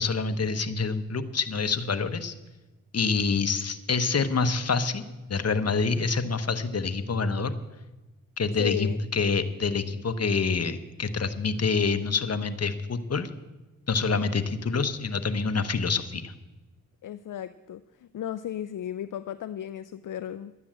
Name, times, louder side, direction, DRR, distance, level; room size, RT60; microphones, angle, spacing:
voice 1, 0.0-2.3 2.9-5.0 5.3-7.5 8.4-13.3 13.9-16.3, left 4 dB, 45° left, 9 dB, 1.1 m, -27 dB
voice 2, 8.6-9.0 17.0-20.6, left 11 dB, 65° left, 13 dB, 0.5 m, -34 dB
12.0 x 9.6 x 7.5 m, 1.1 s
cardioid pair, 65°, 33 cm